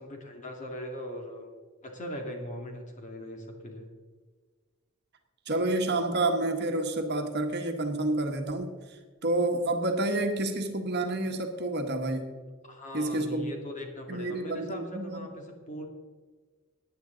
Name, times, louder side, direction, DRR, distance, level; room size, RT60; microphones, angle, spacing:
voice 1, 0.0-1.5 1.8-3.9 12.6-15.8, equal, 35° left, 1 dB, 2.4 m, -40 dB
voice 2, 5.5-12.3 12.9-13.6 14.1-15.2, right 2 dB, 50° right, 5 dB, 1.4 m, -29 dB
17.5 x 9.8 x 3.9 m, 1.5 s
head